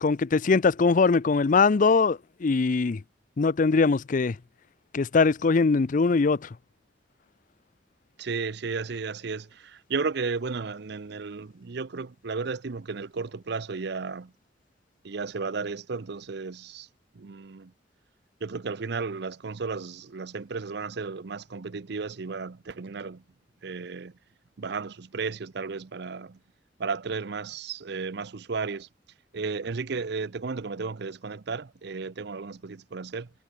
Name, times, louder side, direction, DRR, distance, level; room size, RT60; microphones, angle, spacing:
voice 1, 0.0-3.0 3.4-4.4 4.9-6.5, left 4 dB, 45° left, 0.5 m, -22 dB
voice 2, 8.2-14.3 15.0-16.9 17.1-17.7 18.4-23.2 23.6-24.1 24.6-26.4 26.8-28.9 29.3-33.3, right 4 dB, 60° right, 0.6 m, -34 dB
head